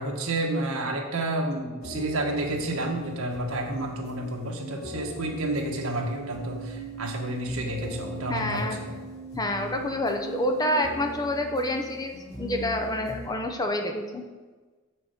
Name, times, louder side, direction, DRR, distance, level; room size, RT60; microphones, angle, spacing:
voice 1, 0.0-8.9, right 1 dB, 80° right, 1 dB, 1.3 m, -30 dB
sound 1, 1.8-13.3, right 2 dB, 85° left, 1.9 m, -40 dB
voice 2, 8.3-8.8 9.4-14.2, left 1 dB, 20° left, 4 dB, 0.7 m, -28 dB
6.9 x 6.1 x 5.0 m, 1.3 s
head